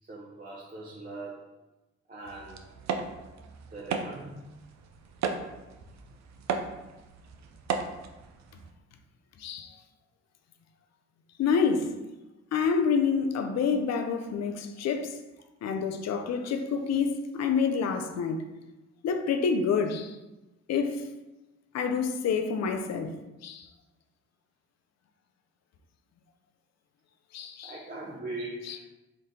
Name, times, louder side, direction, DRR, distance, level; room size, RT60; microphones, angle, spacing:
voice 1, 0.1-1.4 2.1-2.7 3.7-4.5 27.6-28.8, right 2 dB, 30° right, 0.8 m, -40 dB
sound 1, 2.2-8.7, right 5 dB, 65° right, 0.6 m, -36 dB
voice 2, 9.4-9.7 11.4-11.9 12.5-15.1 15.6-18.4 19.0-20.1 20.7-21.0 21.7-23.1 23.4-23.7 27.3-27.8 28.7-28.8, left 5 dB, 60° left, 0.6 m, -27 dB
3.8 x 2.6 x 3.6 m
supercardioid pair, 50°, 30 cm